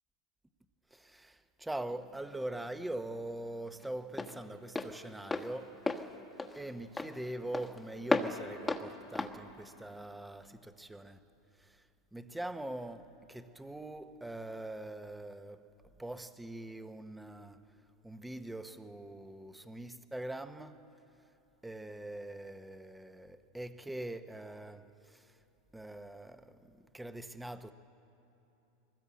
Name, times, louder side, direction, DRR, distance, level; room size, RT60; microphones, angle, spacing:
voice 1, 0.9-5.8 6.6-11.2 11.6-11.8 12.1-15.6 16.0-17.7 18.0-20.8 21.6-25.4 25.7-27.7, right 1 dB, 5° right, 1.0 m, -43 dB
Walk footsteps, 1.9-10.6, left 3 dB, 10° left, 1.3 m, -37 dB
22.0 x 19.5 x 8.6 m
supercardioid pair, 120°, 0 cm